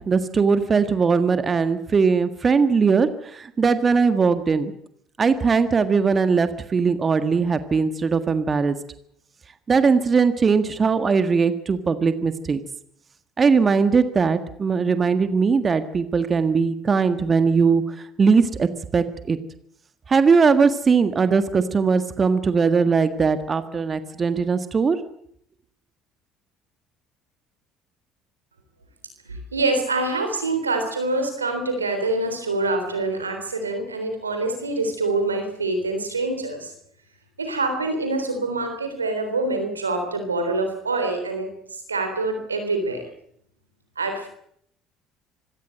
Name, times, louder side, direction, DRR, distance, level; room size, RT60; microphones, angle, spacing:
voice 1, 0.0-4.7 5.2-8.8 9.7-12.6 13.4-19.4 20.1-25.0, right 5 dB, 35° right, 10 dB, 1.6 m, -20 dB
voice 2, 29.3-36.7 37.4-41.5 41.9-43.0 44.0-44.3, right 2 dB, 90° right, 6 dB, 3.6 m, -25 dB
25.5 x 17.0 x 7.8 m, 0.69 s
figure-of-eight pair, 60°, 0 cm